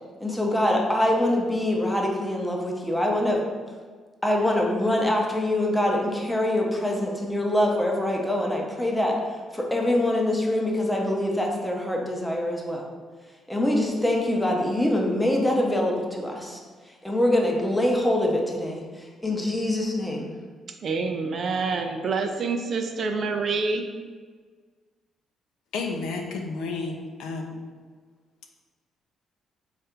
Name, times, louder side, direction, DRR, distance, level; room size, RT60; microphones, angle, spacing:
voice 1, 0.2-3.4 4.2-12.9 13.5-16.6 16.8-20.3, left 1 dB, 5° left, 0 dB, 0.7 m, -24 dB
voice 2, 20.8-23.9, right 4 dB, 55° right, 5 dB, 0.4 m, -27 dB
voice 3, 25.7-27.6, left 3 dB, 85° left, 3 dB, 0.5 m, -31 dB
3.3 x 2.4 x 4.4 m, 1.5 s
cardioid pair, 90°, 0 cm